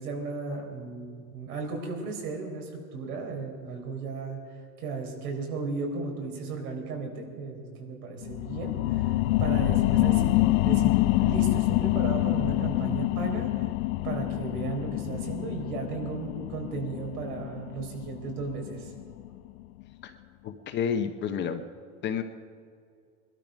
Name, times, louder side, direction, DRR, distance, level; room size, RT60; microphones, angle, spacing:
voice 1, 0.0-4.4 4.8-13.5 14.0-18.9, right 4 dB, 90° right, 2 dB, 4.2 m, -35 dB
sound 1, 8.2-19.4 19.8-19.9, left 18 dB, 70° left, 0.6 m, -26 dB
voice 2, 20.4-21.6 22.0-22.2, left 7 dB, 25° left, 7 dB, 0.8 m, -30 dB
20.5 x 12.5 x 5.2 m, 2.3 s
supercardioid pair, 150°, 44 cm